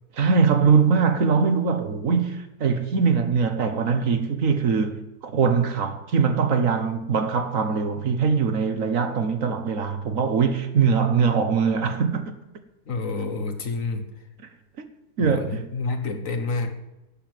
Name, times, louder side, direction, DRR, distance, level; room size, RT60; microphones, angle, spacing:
voice 1, 0.2-12.3 14.8-14.9 15.2-15.6, right 5 dB, 60° right, 1.5 m, -22 dB
voice 2, 12.9-14.1 15.2-16.7, left 3 dB, 60° left, 1.6 m, -28 dB
12.0 x 7.0 x 9.3 m
omnidirectional pair, 1.6 m